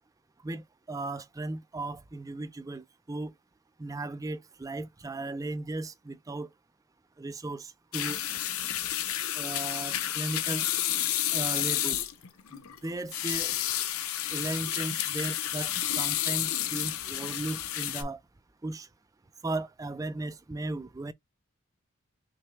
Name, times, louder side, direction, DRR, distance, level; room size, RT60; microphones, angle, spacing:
voice 1, 0.4-3.3 3.8-6.5 7.2-8.2 9.3-10.7 11.3-12.0 12.5-13.6 14.3-18.2 18.6-18.9 19.4-21.1, right 2 dB, 15° right, 0.3 m, -36 dB
sound 1, 7.9-18.0, left 12 dB, 85° left, 0.7 m, -31 dB
5.9 x 2.3 x 3.1 m
head